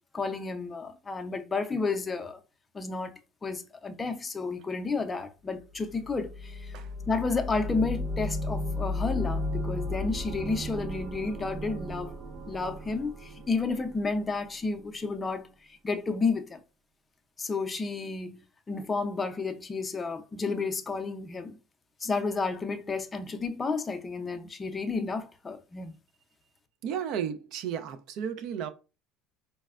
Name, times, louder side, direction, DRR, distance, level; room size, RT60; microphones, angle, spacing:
voice 1, 0.1-2.4 2.7-3.1 3.4-6.7 7.1-12.1 12.5-15.5 15.8-16.6 17.4-21.6 22.0-26.0, left 4 dB, 20° left, 0.5 m, -31 dB
sound 1, 5.7-14.5, left 1 dB, 35° right, 0.8 m, -35 dB
voice 2, 26.8-28.7, right 8 dB, 60° right, 0.4 m, -33 dB
4.1 x 2.1 x 2.4 m
supercardioid pair, 120°, 0 cm